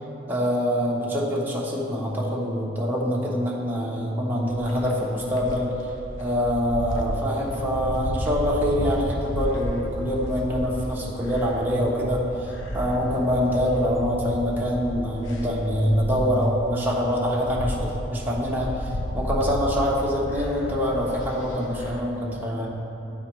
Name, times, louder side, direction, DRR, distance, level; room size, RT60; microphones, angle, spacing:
voice 1, 0.3-5.7 6.2-18.7 19.1-22.7, equal, 10° right, -5 dB, 0.8 m, -25 dB
sound 1, 4.4-22.0, equal, 80° left, 0.7 m, -33 dB
11.5 x 4.3 x 3.0 m, 2.9 s
head